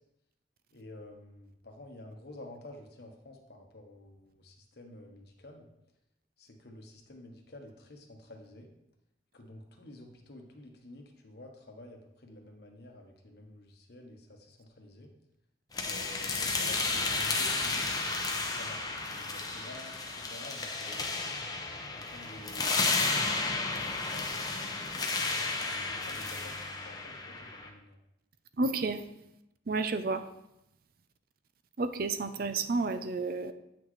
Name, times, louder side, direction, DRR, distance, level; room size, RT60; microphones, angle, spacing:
voice 1, 0.7-5.7 6.4-8.7 9.3-15.1 15.8-17.9 18.4-21.2 21.9-26.5 26.8-28.0, left 1 dB, 55° left, 2 dB, 1.1 m, -50 dB
sound 1, 15.7-27.7, left 3 dB, 20° left, 0.7 m, -32 dB
voice 2, 28.6-29.0 29.7-30.2 31.8-33.5, right 3 dB, 50° right, 11 dB, 0.5 m, -30 dB
8.7 x 6.1 x 3.2 m, 0.86 s
head